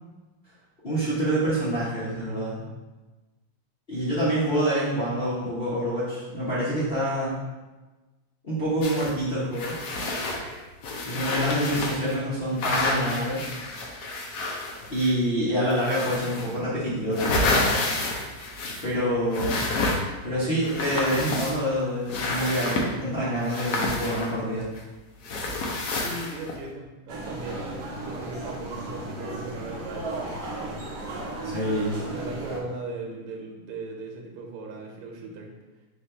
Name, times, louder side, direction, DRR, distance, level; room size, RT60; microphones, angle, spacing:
voice 1, 0.8-2.6 3.9-7.4 8.4-9.7 11.0-13.5 14.9-17.9 18.8-19.5 20.2-24.7 31.4-32.0, equal, 45° left, -10 dB, 0.7 m, -26 dB
sound 1, 8.8-9.1 9.5-12.2 12.6-15.3 15.7-16.5 16.9-19.0 19.3-20.2 20.6-21.7 22.1-22.9 23.4-24.8 25.2-26.6, left 2 dB, 75° left, 0.9 m, -29 dB
voice 2, 26.0-31.0 32.1-35.5, right 3 dB, 85° right, 1 dB, 1.8 m, -38 dB
sound 2, 27.1-32.6, right 2 dB, 60° right, 1.3 m, -35 dB
4.2 x 2.7 x 4.4 m, 1.2 s
omnidirectional pair, 2.4 m